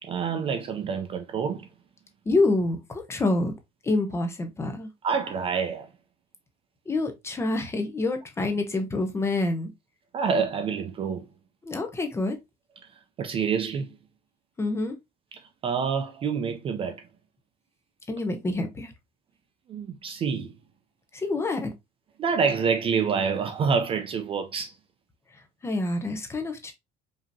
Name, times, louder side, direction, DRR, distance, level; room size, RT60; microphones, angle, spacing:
voice 1, 0.0-1.7 5.0-5.9 10.1-11.3 13.2-14.0 15.3-17.0 19.7-20.5 22.2-24.7, right 6 dB, 30° right, 0.4 m, -27 dB
voice 2, 2.3-3.5 3.8-4.9 6.9-9.7 11.6-12.4 14.6-15.0 18.1-18.9 21.1-21.7 25.3-26.7, left 2 dB, 15° left, 0.6 m, -27 dB
5.2 x 2.8 x 2.6 m
cardioid pair, 170°, 19 cm